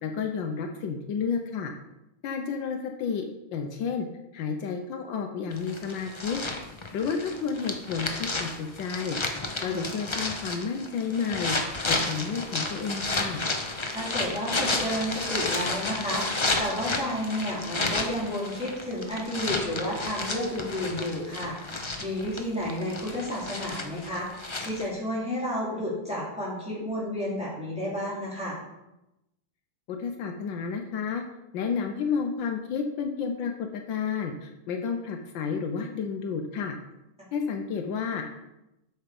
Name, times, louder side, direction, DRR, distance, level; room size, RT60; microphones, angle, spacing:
voice 1, 0.0-1.7 2.2-3.3 3.5-4.1 4.3-6.4 6.9-9.2 9.6-11.6 11.9-13.4 29.9-31.2 31.5-36.7 37.3-38.3, left 6 dB, 75° left, 4 dB, 1.5 m, -31 dB
sound 1, 5.5-24.9, left 2 dB, 45° left, 0.3 m, -32 dB
voice 2, 9.6-9.9 13.9-21.6 22.0-28.6, equal, 5° right, -7 dB, 3.4 m, -31 dB
7.7 x 6.7 x 5.2 m, 0.91 s
omnidirectional pair, 2.1 m